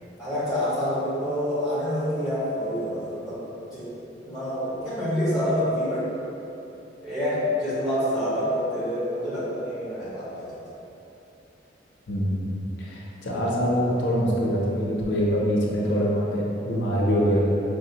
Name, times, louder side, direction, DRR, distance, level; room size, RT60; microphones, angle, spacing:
voice 1, 0.2-3.4 3.7-3.9 4.2-6.1 7.0-10.7, equal, 5° right, -11 dB, 1.0 m, -27 dB
voice 2, 12.1-12.5 12.8-17.4, equal, 80° left, -4 dB, 0.6 m, -24 dB
4.7 x 2.1 x 2.7 m, 3.0 s
head